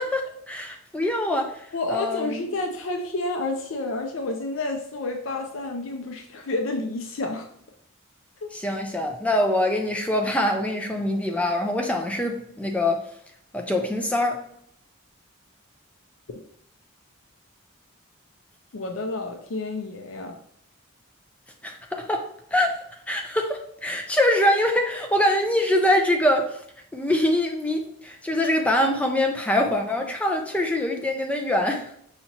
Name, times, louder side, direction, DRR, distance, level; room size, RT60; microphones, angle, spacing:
voice 1, 0.0-2.4 8.5-13.0 13.5-14.4 21.6-26.6 26.9-31.9, left 1 dB, 5° left, 0.4 m, -24 dB
voice 2, 1.7-7.5 8.4-8.5 18.7-20.4, left 2 dB, 70° left, 0.5 m, -30 dB
5.6 x 2.9 x 2.8 m
head